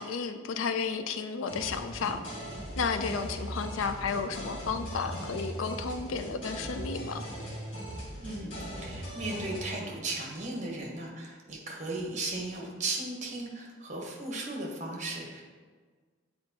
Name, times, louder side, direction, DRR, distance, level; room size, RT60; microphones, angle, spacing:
voice 1, 0.0-2.2 2.8-7.2, left 5 dB, 85° left, 9 dB, 0.4 m, -32 dB
sound 1, 1.5-9.8, right 1 dB, 65° left, 1.6 m, -39 dB
voice 2, 8.2-15.4, right 2 dB, 35° right, -1 dB, 1.0 m, -36 dB
7.7 x 4.3 x 2.8 m, 1.5 s
head